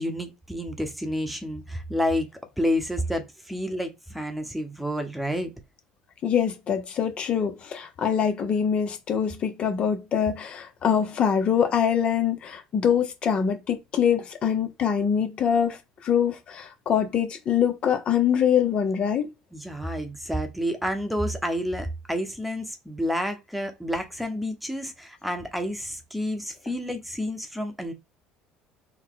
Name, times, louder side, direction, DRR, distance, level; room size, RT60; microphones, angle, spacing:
voice 1, 0.0-2.3 2.6-5.5 19.5-27.9, equal, 5° right, 0.9 m, -29 dB
voice 2, 6.2-19.3, left 8 dB, 50° left, 0.7 m, -24 dB
4.0 x 2.1 x 3.8 m
hypercardioid pair, 75°, 2 cm